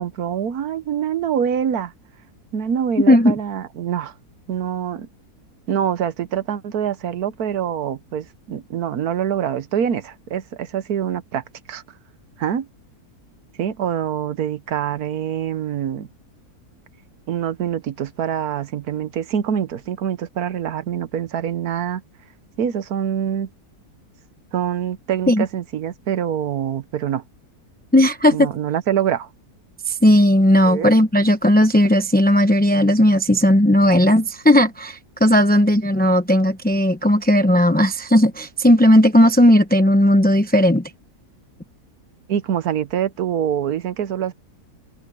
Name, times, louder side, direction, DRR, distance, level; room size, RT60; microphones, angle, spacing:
voice 1, 0.0-1.9 2.5-4.1 4.5-5.1 5.7-11.4 11.7-11.8 12.4-12.7 13.6-16.1 17.3-22.0 22.6-23.5 24.5-27.2 28.3-29.3 30.7-30.9 42.3-44.3, right 9 dB, 70° right, 1.4 m, -25 dB
voice 2, 27.9-28.5 29.9-40.8, left 1 dB, 10° left, 0.4 m, -15 dB
omnidirectional pair, 1.7 m